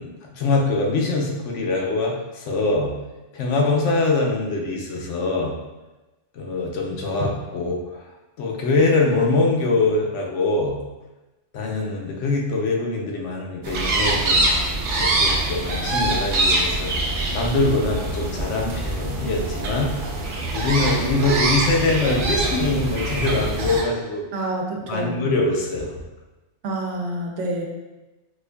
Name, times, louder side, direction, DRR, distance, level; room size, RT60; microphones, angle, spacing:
voice 1, 0.0-2.9 3.3-5.6 6.3-8.1 8.4-10.8 11.5-14.5 15.0-20.0 20.5-24.3 24.9-26.0, left 2 dB, 85° left, 0 dB, 1.0 m, -23 dB
sound 1, 13.6-23.8, right 2 dB, 55° right, 0.6 m, -24 dB
voice 2, 24.3-25.2 26.6-27.7, right 1 dB, 80° right, 1 dB, 0.9 m, -27 dB
4.4 x 2.5 x 2.2 m, 1.1 s
omnidirectional pair, 1.2 m